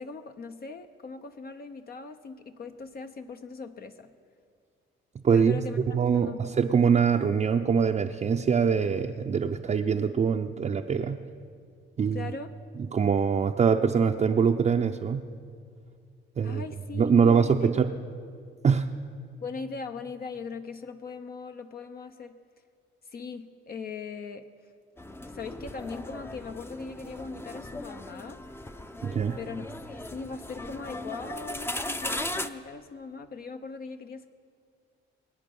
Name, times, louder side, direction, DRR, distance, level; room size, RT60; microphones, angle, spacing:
voice 1, 0.0-4.1 5.3-5.8 6.1-6.5 12.1-12.5 16.4-18.0 19.4-22.4 23.1-24.5 25.3-28.4 29.4-34.3, left 4 dB, 50° left, 7 dB, 0.7 m, -40 dB
voice 2, 5.2-5.6 5.9-11.2 12.0-12.3 12.9-15.3 16.4-16.6 17.0-17.9 18.6-18.9 29.0-29.4, right 6 dB, 35° right, 2 dB, 0.6 m, -23 dB
sound 1, 25.0-32.5, left 1 dB, 10° left, 0.6 m, -37 dB
24.0 x 8.6 x 5.4 m, 2.2 s
cardioid pair, 90°, 20 cm